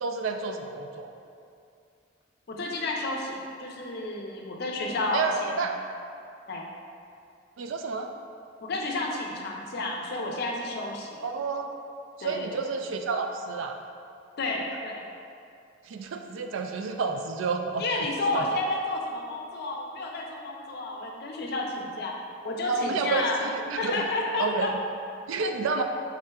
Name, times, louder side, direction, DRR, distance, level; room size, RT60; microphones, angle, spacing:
voice 1, 0.0-1.1 5.1-5.8 7.6-8.1 11.2-11.7 12.2-13.8 15.9-17.9 18.3-18.5 22.7-24.0 24.4-24.7 25.3-25.8, right 4 dB, 75° right, 5 dB, 0.3 m, -30 dB
voice 2, 2.5-5.7 6.5-6.6 8.6-11.2 12.2-12.6 14.4-15.0 17.8-22.2 22.4-23.5 23.8-24.7, left 2 dB, 50° left, 0 dB, 0.5 m, -31 dB
5.6 x 3.6 x 2.3 m, 2.5 s
head